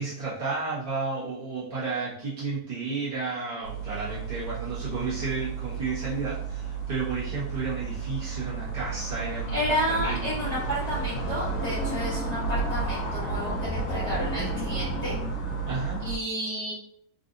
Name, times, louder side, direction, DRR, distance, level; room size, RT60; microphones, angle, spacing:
voice 1, 0.0-9.6 9.9-10.7 15.6-16.0, right 4 dB, 25° right, -11 dB, 1.2 m, -32 dB
sound 1, 3.6-16.2, right 3 dB, 85° left, 1.3 m, -32 dB
voice 2, 9.5-15.2 16.0-16.7, equal, 20° left, -11 dB, 1.0 m, -31 dB
3.6 x 2.6 x 2.6 m, 0.69 s
omnidirectional pair, 1.6 m